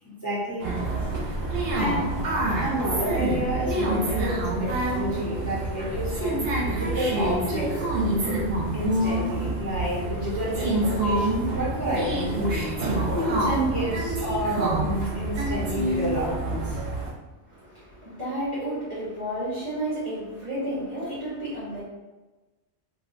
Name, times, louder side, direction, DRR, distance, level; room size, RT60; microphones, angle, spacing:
voice 1, 0.0-0.7 1.7-2.1 2.6-7.7 8.7-12.7 13.1-16.8, equal, 15° left, -9 dB, 0.8 m, -29 dB
sound 1, 0.6-17.1, right 1 dB, 60° right, 0.9 m, -27 dB
voice 2, 17.4-21.8, right 1 dB, 30° right, -9 dB, 0.8 m, -32 dB
2.7 x 2.3 x 3.7 m, 1.1 s
omnidirectional pair, 1.2 m